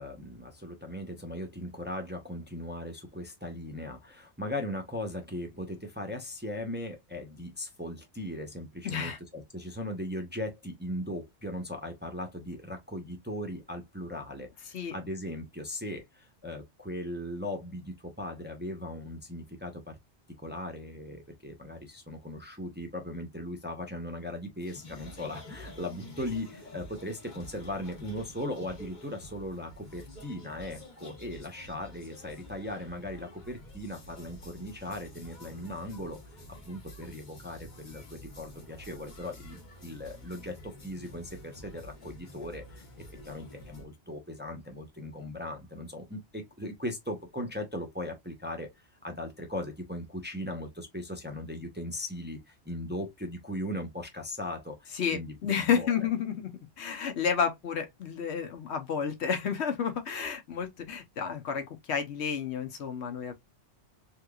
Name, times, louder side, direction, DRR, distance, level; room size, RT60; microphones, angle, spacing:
voice 1, 0.0-20.0 20.4-36.4 36.7-42.8 43.2-55.9, left 1 dB, 10° right, 0.6 m, -38 dB
voice 2, 8.8-9.2 14.7-14.9 54.9-63.3, left 7 dB, 75° left, 1.1 m, -31 dB
sound 1, 24.6-43.8, left 1 dB, 45° left, 1.1 m, -49 dB
3.5 x 2.9 x 2.3 m
omnidirectional pair, 1.1 m